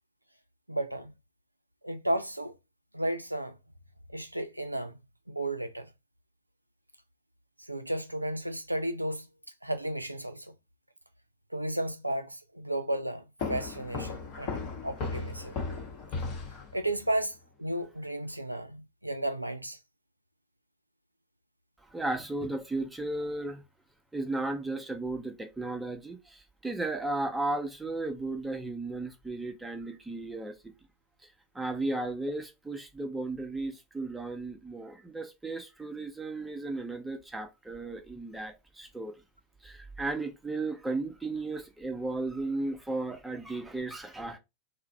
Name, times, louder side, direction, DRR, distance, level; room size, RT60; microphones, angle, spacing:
voice 1, 0.7-1.1 1.8-2.5 2.9-3.6 4.1-5.0 5.3-5.9 7.7-9.3 9.6-10.5 11.5-13.2 13.5-14.6 14.8-15.6 16.7-19.8, right 1 dB, 85° right, 0.3 m, -33 dB
sound 1, 13.4-17.1, left 4 dB, 45° left, 0.9 m, -36 dB
voice 2, 21.9-23.6 24.1-30.7 31.5-39.1 39.6-44.4, right 2 dB, 5° right, 0.7 m, -35 dB
2.4 x 2.0 x 3.9 m
figure-of-eight pair, 90°, 0 cm